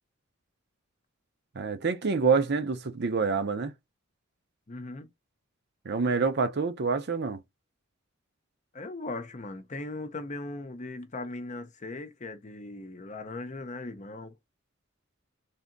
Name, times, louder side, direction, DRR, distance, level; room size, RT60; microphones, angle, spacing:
voice 1, 1.5-3.7 5.8-7.4, right 4 dB, 55° right, 0.6 m, -27 dB
voice 2, 4.7-5.1 8.7-14.3, left 2 dB, 35° left, 0.7 m, -38 dB
3.6 x 2.7 x 3.8 m
head